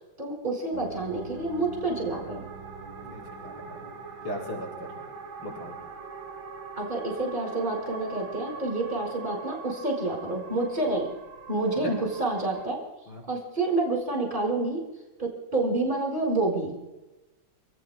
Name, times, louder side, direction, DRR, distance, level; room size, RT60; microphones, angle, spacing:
voice 1, 0.2-2.4 6.8-11.1 11.5-12.8 13.3-14.8 15.2-16.9, right 2 dB, 25° right, 0 dB, 4.9 m, -28 dB
sound 1, 0.7-12.7, right 4 dB, 65° right, 2.4 m, -42 dB
voice 2, 3.0-3.6 4.2-5.0 5.4-5.8 11.8-12.0 13.1-13.2, equal, 80° left, -4 dB, 6.3 m, -37 dB
29.5 x 18.5 x 2.2 m, 1.1 s
omnidirectional pair, 2.3 m